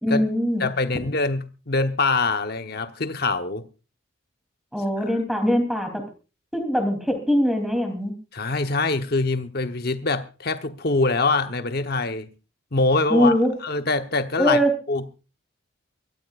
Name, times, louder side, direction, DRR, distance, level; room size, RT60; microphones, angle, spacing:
voice 1, 0.0-0.6 4.7-6.0 6.5-8.1 13.1-13.5 14.4-14.7, equal, ahead, 3.1 m, -22 dB
voice 2, 0.6-3.7 8.3-12.3 12.7-13.4 13.6-14.6 14.9-15.0, left 3 dB, 50° left, 1.0 m, -24 dB
24.0 x 14.0 x 2.5 m
head